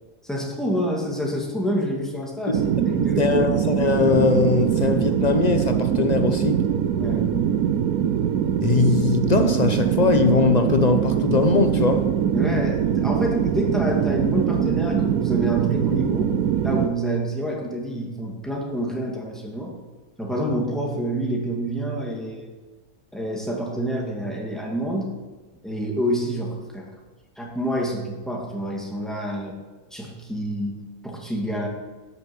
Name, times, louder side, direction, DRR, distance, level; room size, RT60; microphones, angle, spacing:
voice 1, 0.2-3.2 7.0-7.3 12.3-16.3 16.6-19.7 20.2-22.5 23.1-25.1 25.6-26.9 27.4-29.6 29.9-31.7, equal, ahead, 2.2 m, -27 dB
sound 1, 2.5-16.9, right 9 dB, 80° right, 1.2 m, -22 dB
voice 2, 3.2-6.6 8.6-12.1, left 4 dB, 40° left, 0.6 m, -21 dB
12.0 x 6.9 x 7.6 m
omnidirectional pair, 1.6 m